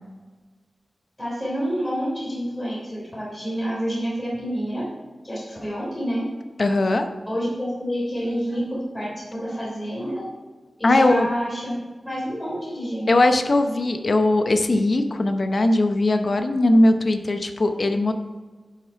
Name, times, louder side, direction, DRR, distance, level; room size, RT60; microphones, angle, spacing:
voice 1, 1.2-4.8 5.2-6.2 7.3-10.3 10.8-11.7 12.0-13.1, equal, 15° left, -6 dB, 3.2 m, -28 dB
voice 2, 6.6-7.1 10.8-11.3 13.1-18.1, left 2 dB, 50° left, 7 dB, 0.8 m, -19 dB
11.0 x 5.9 x 4.6 m, 1.4 s
wide cardioid pair, 110°, 0 cm